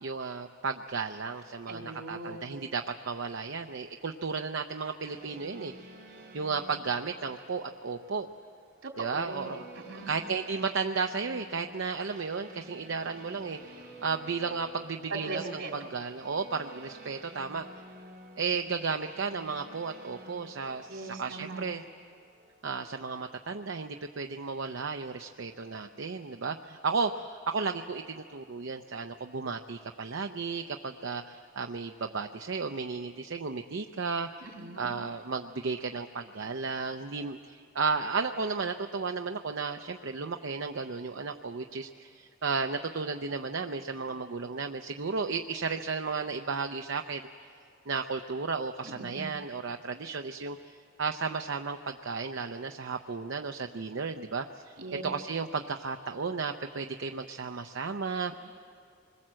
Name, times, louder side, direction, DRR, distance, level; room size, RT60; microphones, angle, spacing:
voice 1, 0.0-5.9 6.3-8.3 9.0-9.6 10.1-17.7 18.4-21.8 22.6-34.5 34.8-47.2 47.9-58.3, right 4 dB, 70° right, 6 dB, 0.6 m, -34 dB
voice 2, 1.7-2.5 8.8-10.1 15.1-15.9 20.9-21.7 34.4-34.9 48.8-49.2 54.8-55.0, right 2 dB, 90° right, 0 dB, 3.8 m, -40 dB
sound 1, 5.0-23.1, right 1 dB, 50° right, 5.1 m, -51 dB
26.0 x 21.5 x 7.6 m, 2.3 s
head